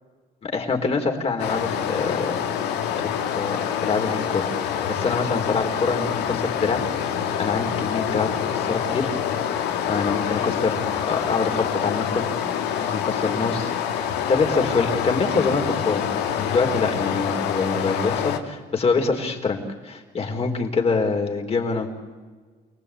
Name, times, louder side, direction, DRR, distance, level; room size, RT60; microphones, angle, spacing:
voice 1, 0.4-2.4 3.0-4.5 4.9-9.1 9.9-12.2 12.5-12.6 12.9-16.0 16.4-21.9, left 4 dB, 35° left, 3 dB, 4.3 m, -25 dB
Stream, 1.4-18.4, left 8 dB, 85° left, 2.1 m, -26 dB
29.0 x 19.5 x 8.7 m, 1.5 s
cardioid pair, 110°, 17 cm